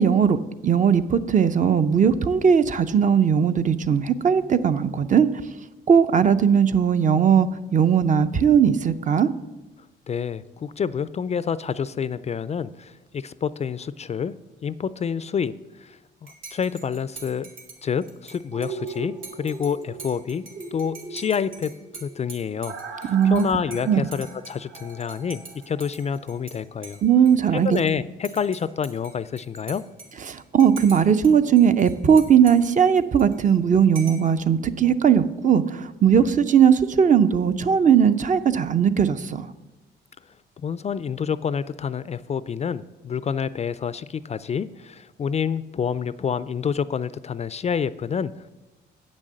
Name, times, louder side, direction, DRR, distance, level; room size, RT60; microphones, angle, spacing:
voice 1, 0.0-5.3 5.9-9.3 23.1-23.4 23.9-24.1 27.0-27.8 30.3-39.5, right 7 dB, 40° right, 11 dB, 0.6 m, -18 dB
voice 2, 10.1-14.3 14.6-15.5 15.8-17.5 17.8-20.4 20.7-27.0 27.6-29.8 40.6-48.5, left 7 dB, 35° left, 16 dB, 0.3 m, -28 dB
Dishes pots and pans / Cutlery silverware / Chink clink, 16.3-26.6 26.8-27.9 28.2-31.3 31.6-33.6 34.0-34.3, right 4 dB, 85° right, 2.1 m, -44 dB
sound 1, 18.5-26.4 26.7-26.8, right 4 dB, 60° right, 1.6 m, -40 dB
8.3 x 6.4 x 7.5 m, 1.1 s
cardioid pair, 90°, 20 cm